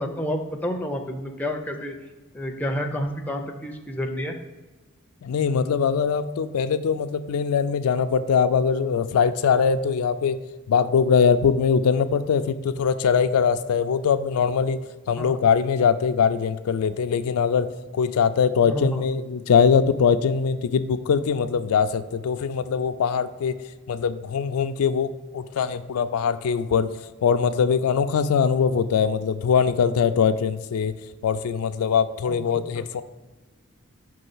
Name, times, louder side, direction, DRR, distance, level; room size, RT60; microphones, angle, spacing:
voice 1, 0.0-1.9 2.3-4.4 15.2-15.4 18.6-19.0 32.7-32.8, equal, 5° left, 3 dB, 0.4 m, -29 dB
voice 2, 5.2-10.4 10.7-14.8 15.1-23.6 23.9-26.9 27.2-30.9 31.2-33.0, left 6 dB, 85° left, 11 dB, 0.3 m, -22 dB
5.5 x 3.2 x 5.4 m, 1.3 s
head